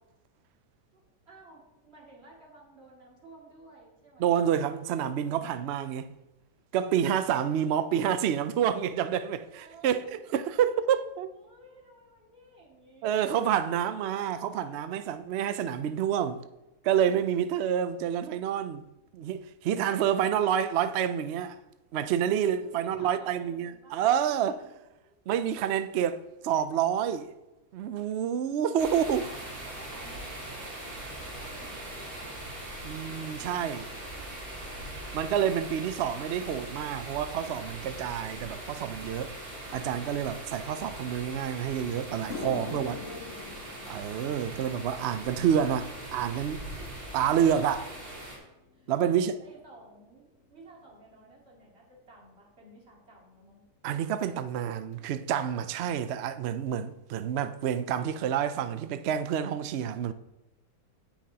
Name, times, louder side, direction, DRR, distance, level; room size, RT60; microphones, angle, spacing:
voice 1, 0.9-4.4 9.5-10.2 11.3-13.4 22.7-24.0 24.6-24.8 25.1-25.3 28.8-31.1 31.4-32.3 42.5-43.7 46.8-47.5 48.7-53.6, right 2 dB, 40° right, 2.6 m, -53 dB
voice 2, 4.2-6.1 6.7-11.3 13.0-16.4 16.8-18.8 19.1-21.6 21.9-24.6 25.3-27.3 27.7-29.2 32.8-33.9 35.1-39.3 39.7-43.0 43.9-46.6 47.1-47.9 48.9-49.3 53.8-60.1, right 9 dB, 85° right, 0.5 m, -28 dB
sound 1, 28.8-48.4, right 1 dB, 60° right, 3.3 m, -41 dB
sound 2, 42.3-50.6 50.9-51.3 52.1-52.2 54.9-55.0 56.7-56.8 56.9-57.2 57.5-58.0 58.4-58.5 59.0-59.1, left 3 dB, 55° left, 1.2 m, -46 dB
16.5 x 5.8 x 2.8 m
omnidirectional pair, 1.8 m